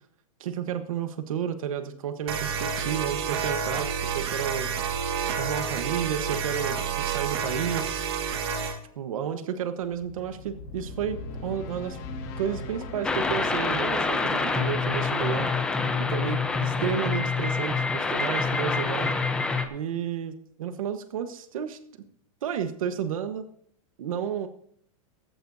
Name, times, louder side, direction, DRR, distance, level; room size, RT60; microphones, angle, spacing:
voice 1, 0.4-4.7 5.4-8.1 9.0-12.0 12.4-15.5 16.0-19.1 19.7-21.8 22.4-23.4 24.0-24.5, right 8 dB, 75° right, 8 dB, 1.2 m, -32 dB
sound 1, 2.3-8.8, right 6 dB, 45° right, 1.9 m, -29 dB
sound 2, 9.8-18.9, left 4 dB, 30° left, 1.9 m, -41 dB
sound 3, 13.0-19.7, left 4 dB, 5° left, 0.7 m, -26 dB
16.5 x 15.5 x 2.7 m, 0.66 s
supercardioid pair, 175°, 18 cm